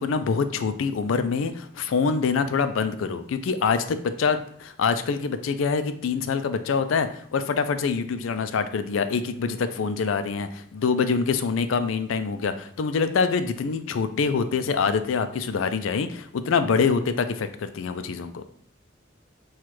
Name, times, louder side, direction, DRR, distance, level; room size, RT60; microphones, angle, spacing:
voice 1, 0.0-18.4, left 5 dB, 75° left, 10 dB, 0.4 m, -25 dB
5.8 x 2.3 x 3.1 m, 0.64 s
head